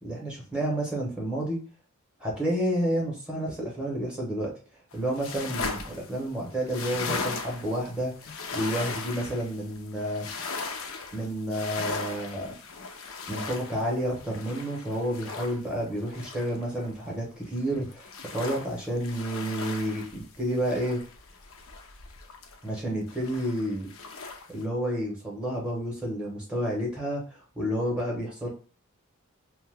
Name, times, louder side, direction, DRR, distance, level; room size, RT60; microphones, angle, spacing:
voice 1, 0.0-1.6 2.2-4.5 4.9-10.3 11.1-12.5 13.3-21.0 22.6-23.9 24.5-28.5, right 1 dB, 5° right, -3 dB, 0.8 m, -30 dB
sound 1, 4.9-17.1 17.4-22.8 23.1-24.6, left 4 dB, 65° left, 0.5 m, -38 dB
2.7 x 2.2 x 3.2 m, 0.39 s
head